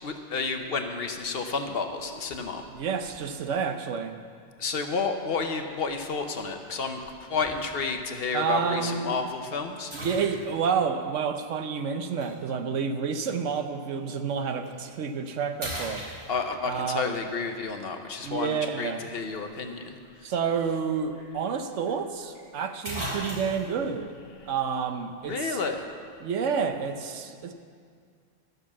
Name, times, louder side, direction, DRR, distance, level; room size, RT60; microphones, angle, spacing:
voice 1, 0.0-2.6 4.6-9.9 16.3-20.0 25.3-25.9, left 4 dB, 55° left, 6 dB, 1.0 m, -31 dB
voice 2, 2.7-4.2 8.3-9.2 9.9-16.1 16.7-17.2 18.2-19.0 20.2-24.1 24.5-25.6 26.2-27.5, right 6 dB, 85° right, 8 dB, 1.1 m, -29 dB
sound 1, 7.4-7.7 8.4-8.5 9.9-10.7 12.2-12.3 14.5-14.7 15.1-15.3 15.6-16.7 20.8-20.9 21.2-21.3 22.3-22.4 22.8-23.7, equal, 60° right, 3.6 m, -36 dB
13.0 x 6.7 x 7.2 m, 2.2 s
omnidirectional pair, 1.2 m